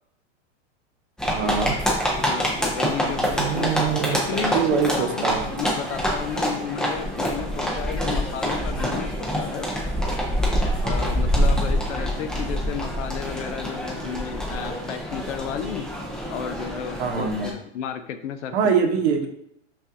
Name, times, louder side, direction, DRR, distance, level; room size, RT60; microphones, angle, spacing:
sound 1, 1.2-17.5, equal, ahead, 0.4 m, -26 dB
voice 1, 1.3-1.8 3.4-5.5 10.8-10.9 17.0-17.5 18.5-19.3, right 6 dB, 60° right, 4 dB, 0.8 m, -24 dB
voice 2, 2.1-9.7 10.8-15.9 16.3-18.6, left 8 dB, 75° left, 9 dB, 0.6 m, -33 dB
5.4 x 2.5 x 2.5 m, 0.74 s
supercardioid pair, 135°, 36 cm